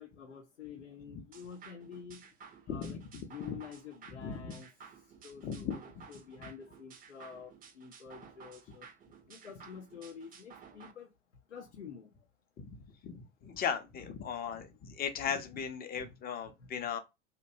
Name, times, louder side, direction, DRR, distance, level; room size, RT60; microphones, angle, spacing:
voice 1, 0.0-2.2 2.7-4.7 5.2-8.9 9.3-11.1 11.5-12.1, left 7 dB, 90° left, 0.5 m, -48 dB
sound 1, 1.3-10.9, right 6 dB, 25° right, 0.5 m, -55 dB
voice 2, 2.7-3.0 3.5-3.6 4.1-4.5 5.4-6.0 12.6-12.7 13.0-17.0, left 7 dB, 25° left, 0.5 m, -37 dB
2.6 x 2.2 x 2.6 m
figure-of-eight pair, 70°, 35 cm